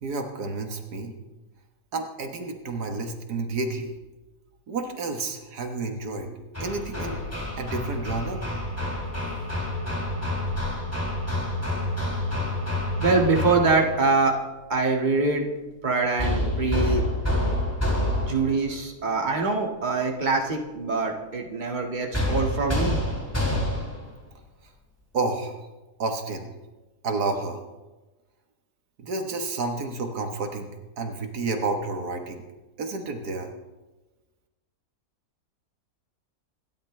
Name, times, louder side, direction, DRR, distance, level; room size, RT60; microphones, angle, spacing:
voice 1, 0.0-1.1 1.9-3.9 4.7-6.3 6.6-7.3 7.6-8.4 25.1-25.6 26.0-26.5 27.0-27.6 29.0-32.4 32.8-33.5, right 3 dB, 80° right, 4 dB, 1.9 m, -30 dB
Hammer, 6.5-14.0 16.2-18.6 22.1-24.1, left 1 dB, 10° left, 3.1 m, -28 dB
voice 2, 13.0-14.4 14.7-15.5 15.8-17.0 18.2-23.0, right 3 dB, 30° right, 0 dB, 2.0 m, -24 dB
27.5 x 12.0 x 3.3 m, 1.1 s
omnidirectional pair, 1.7 m